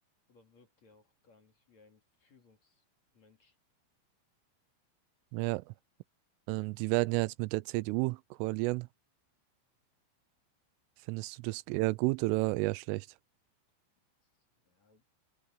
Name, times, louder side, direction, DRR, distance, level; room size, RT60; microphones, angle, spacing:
voice 1, 0.3-2.8 3.1-3.6 11.2-11.3 14.2-15.0, left 3 dB, 40° left, 3.4 m, -65 dB
voice 2, 5.3-5.7 6.5-8.9 11.1-13.1, right 23 dB, 90° right, 3.2 m, -31 dB
omnidirectional pair, 5.7 m